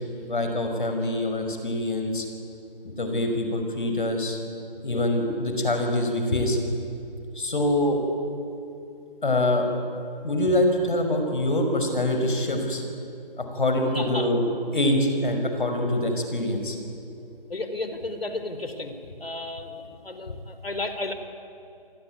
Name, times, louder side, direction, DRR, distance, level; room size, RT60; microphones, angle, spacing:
voice 1, 0.3-2.3 3.0-4.4 4.8-6.6 7.3-8.0 9.2-9.7 10.2-12.8 13.4-14.4 14.7-16.8, left 1 dB, 60° left, 5 dB, 5.8 m, -24 dB
voice 2, 13.9-14.3 17.5-18.9 19.2-21.1, left 2 dB, 90° left, 8 dB, 4.1 m, -33 dB
28.5 x 20.5 x 9.4 m, 2.7 s
figure-of-eight pair, 170°, 29 cm